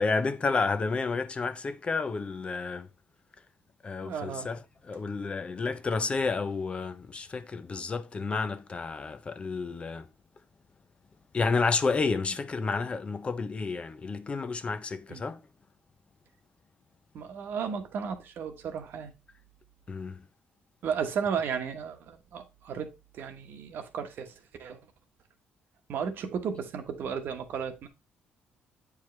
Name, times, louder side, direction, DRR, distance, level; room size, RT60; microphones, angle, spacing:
voice 1, 0.0-2.9 3.8-4.6 4.9-10.1 11.3-15.4 19.9-20.2, left 4 dB, 30° left, 0.6 m, -30 dB
voice 2, 4.0-4.5 15.1-15.2 17.1-19.1 20.8-24.3 24.6-24.8 25.9-27.9, right 7 dB, 65° right, 1.2 m, -34 dB
8.6 x 4.9 x 3.2 m
cardioid pair, 120°, 4 cm